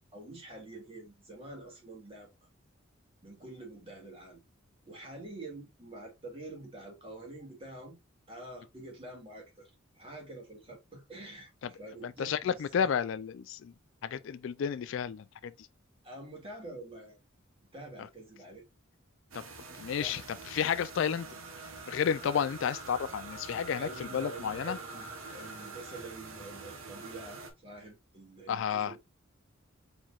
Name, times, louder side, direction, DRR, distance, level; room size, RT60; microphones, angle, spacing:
voice 1, 0.0-2.3 3.2-4.4 4.8-8.0 8.3-12.9 16.0-17.2 17.7-18.7 19.8-20.3 23.8-29.0, right 2 dB, 25° right, 2.3 m, -47 dB
voice 2, 12.0-13.7 14.0-15.7 18.0-18.1 19.3-19.4 19.8-21.3 21.9-24.8 28.5-29.0, left 7 dB, 60° left, 0.3 m, -32 dB
sound 1, 19.3-27.5, right 3 dB, 80° right, 1.3 m, -45 dB
4.6 x 4.3 x 2.4 m
head